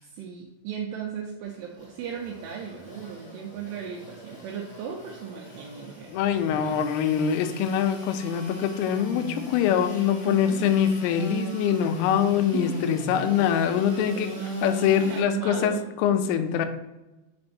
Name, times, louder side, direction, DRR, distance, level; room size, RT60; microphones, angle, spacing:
voice 1, 0.0-6.1 6.4-6.8 10.2-10.7 12.5-13.0 13.8-14.6 15.1-15.9, right 7 dB, 85° right, 0 dB, 2.4 m, -36 dB
Engine / Sawing, 1.4-15.2, equal, 50° left, 0.9 m, -39 dB
voice 2, 6.1-14.3 14.6-16.7, left 8 dB, 85° left, 8 dB, 3.2 m, -24 dB
7.5 x 2.6 x 5.8 m, 1.0 s
omnidirectional pair, 5.7 m